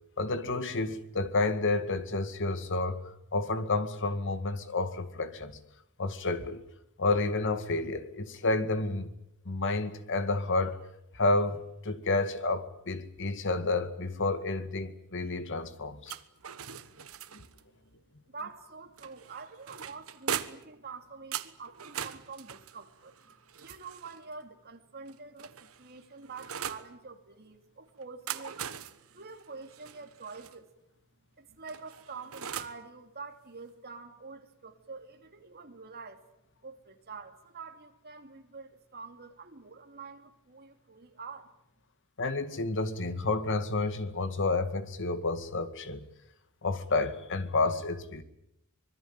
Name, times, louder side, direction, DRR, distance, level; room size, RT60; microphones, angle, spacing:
voice 1, 0.2-3.0 3.3-5.5 6.0-6.6 7.0-9.1 9.5-10.8 11.1-16.1 42.2-46.1 46.6-48.2, left 3 dB, 55° left, 2.1 m, -30 dB
sound 1, 16.1-17.6 19.0-20.8 21.3-24.2 25.1-26.9 28.0-30.6 31.7-32.8, right 8 dB, 65° right, 1.3 m, -40 dB
voice 2, 18.3-28.7 29.1-30.7 31.4-36.2 36.6-41.5, right 4 dB, 45° right, 2.9 m, -46 dB
25.0 x 22.0 x 9.1 m
head